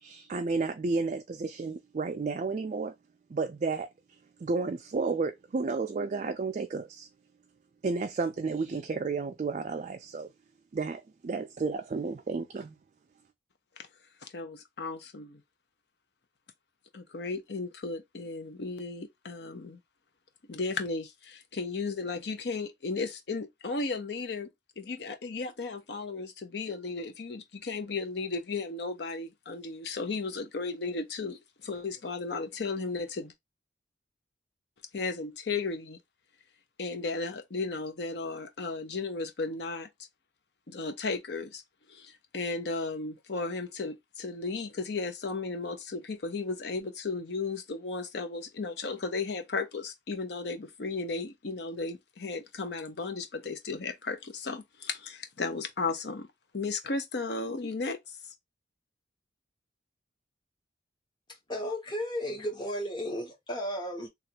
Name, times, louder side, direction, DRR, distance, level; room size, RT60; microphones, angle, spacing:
voice 1, 0.0-2.9 3.3-3.9 4.4-7.1 7.8-10.3 10.7-12.8, right 4 dB, 40° right, 0.3 m, -32 dB
voice 2, 14.3-15.4 16.9-19.8 20.5-24.5 24.8-33.3 34.9-36.0 36.8-39.9 40.7-41.6 41.9-56.3 56.5-58.2, left 3 dB, 60° left, 0.6 m, -35 dB
voice 3, 61.3-64.1, equal, 25° left, 1.0 m, -34 dB
3.1 x 2.4 x 2.8 m
head